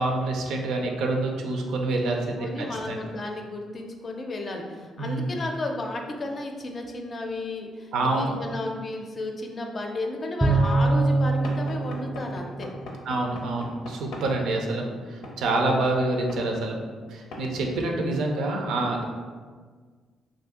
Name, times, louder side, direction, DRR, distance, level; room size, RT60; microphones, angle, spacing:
voice 1, 0.0-3.0 5.0-5.4 7.9-8.3 13.1-16.8 17.1-19.1, right 2 dB, 80° right, 1 dB, 0.5 m, -27 dB
voice 2, 2.0-12.7 14.8-15.0, left 2 dB, 40° left, 2 dB, 0.5 m, -33 dB
Bowed string instrument, 10.4-13.0, right 2 dB, 5° right, 0.6 m, -24 dB
Knock / Wood, 11.4-14.3 15.2-15.4 16.3-16.5 17.3-17.5, left 1 dB, 85° left, 0.6 m, -39 dB
2.7 x 2.6 x 3.6 m, 1.6 s
cardioid pair, 90°, 0 cm